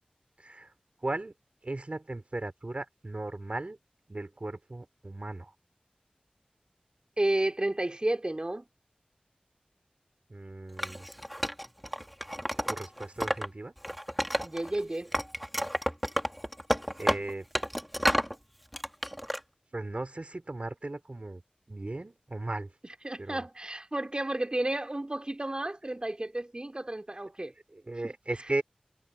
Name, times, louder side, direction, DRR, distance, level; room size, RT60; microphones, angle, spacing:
voice 1, 0.4-0.7 1.0-1.3 1.6-3.8 4.1-5.5 10.3-11.0 12.7-13.7 17.0-17.4 19.7-21.4 21.7-22.7 23.2-23.4 27.7-28.6, right 2 dB, 55° right, 4.3 m, -36 dB
voice 2, 7.2-8.6 14.4-15.1 23.0-27.5, right 1 dB, 35° right, 3.2 m, -31 dB
Wood, 10.8-13.5 13.8-14.8 15.1-18.3 18.7-19.4, equal, ahead, 2.3 m, -31 dB
wide cardioid pair, 45°, 3 cm